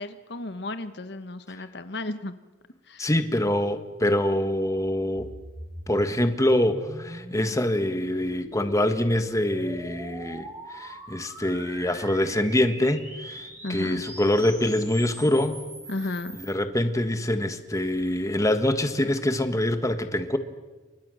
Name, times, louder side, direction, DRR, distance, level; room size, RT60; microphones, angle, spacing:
voice 1, 0.0-2.3 2.9-3.1 13.6-14.0 15.9-16.4, left 2 dB, 65° left, 11 dB, 1.2 m, -34 dB
voice 2, 3.0-5.3 5.9-15.6 16.4-20.4, left 1 dB, 20° left, 8 dB, 1.5 m, -25 dB
sound 1, 5.1-16.5, right 1 dB, 15° right, 5.5 m, -42 dB
30.0 x 24.5 x 6.4 m, 1.2 s
head